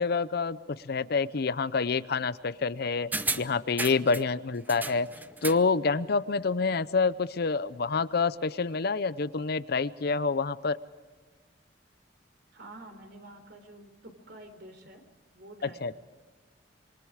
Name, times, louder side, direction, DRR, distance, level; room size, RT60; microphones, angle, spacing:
voice 1, 0.0-3.1 3.4-5.1 5.4-10.8 15.6-15.9, left 4 dB, 60° left, 15 dB, 0.7 m, -27 dB
sound 1, 3.1-4.3 4.7-5.7 6.0-6.1, right 2 dB, 10° right, 0.7 m, -34 dB
voice 2, 12.5-15.0 15.3-15.8, right 1 dB, 65° right, 6 dB, 3.9 m, -48 dB
27.0 x 24.0 x 5.0 m, 1.3 s
head